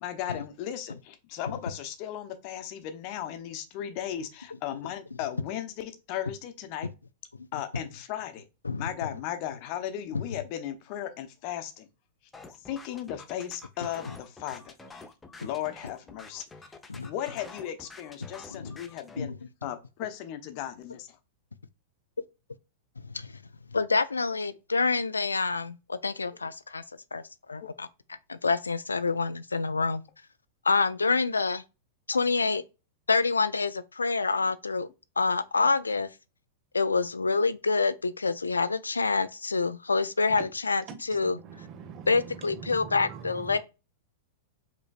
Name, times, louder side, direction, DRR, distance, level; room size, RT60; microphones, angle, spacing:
voice 1, 0.0-6.9 7.5-8.4 8.8-11.9 12.7-14.7 15.4-16.7 17.1-19.3 19.6-21.2 27.6-27.8, left 11 dB, 50° left, 0.8 m, -36 dB
sound 1, 12.3-19.2, left 3 dB, 15° left, 0.7 m, -48 dB
voice 2, 23.7-26.8 27.1-27.2 27.5-27.9 28.3-30.0 30.7-31.6 32.1-32.6 33.1-34.9 35.2-36.1 36.7-40.8 41.1-41.3 42.1-43.6, left 4 dB, 90° left, 0.3 m, -27 dB
voice 3, 41.2-43.6, right 7 dB, 45° right, 1.2 m, -43 dB
5.1 x 3.0 x 2.3 m
hypercardioid pair, 100°, 0 cm